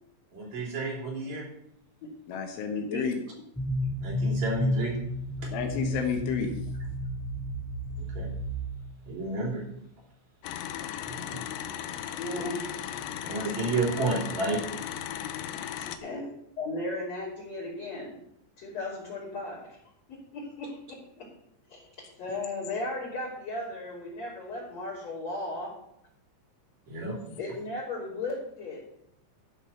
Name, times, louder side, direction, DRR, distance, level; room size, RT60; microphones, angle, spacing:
voice 1, 0.3-1.4 4.0-4.9 8.1-8.3 9.1-9.6 11.1-11.4 12.4-12.5 13.2-14.6 26.9-27.2, right 2 dB, 40° right, -2 dB, 4.2 m, -31 dB
voice 2, 2.3-3.1 5.5-6.5 13.3-13.5 15.7-16.2 27.3-27.4, left 6 dB, 75° left, 4 dB, 3.5 m, -32 dB
sound 1, 3.6-9.1, equal, ahead, 1.9 m, -32 dB
sound 2, 10.4-16.0, left 10 dB, 90° left, 2.5 m, -36 dB
voice 3, 12.2-12.8 16.0-16.3 16.6-18.2 18.6-19.8 20.1-21.3 21.7-21.9 22.2-25.8 27.4-28.8, left 2 dB, 35° left, -8 dB, 3.7 m, -36 dB
13.5 x 6.9 x 5.7 m, 0.75 s
omnidirectional pair, 6.0 m